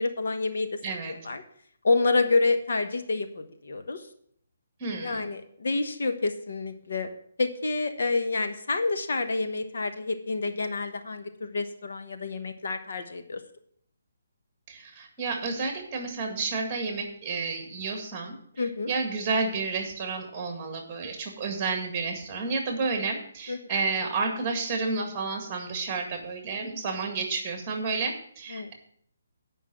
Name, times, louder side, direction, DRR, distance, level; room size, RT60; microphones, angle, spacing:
voice 1, 0.0-0.7 1.1-1.4 1.8-4.0 5.0-7.1 7.4-13.4 18.6-18.9 23.5-23.6 28.5-28.7, left 3 dB, 70° left, 7 dB, 1.2 m, -28 dB
voice 2, 0.8-1.1 4.8-5.3 14.7-18.3 18.9-28.7, right 4 dB, 20° right, 4 dB, 1.9 m, -31 dB
9.8 x 5.4 x 7.4 m, 0.63 s
hypercardioid pair, 170°, 0 cm